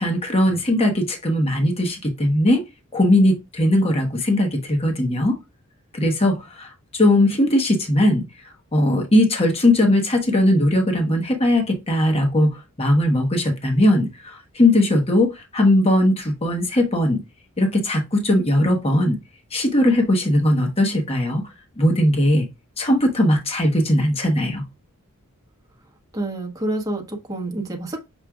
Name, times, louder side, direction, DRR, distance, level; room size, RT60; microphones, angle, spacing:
voice 1, 0.0-2.6 2.9-5.3 5.9-8.2 8.7-17.2 17.6-19.2 19.5-21.4 21.8-22.5 22.8-24.6, left 1 dB, 25° left, 1.0 m, -19 dB
voice 2, 26.1-28.1, right 1 dB, 15° right, 0.9 m, -28 dB
6.2 x 2.4 x 3.4 m
head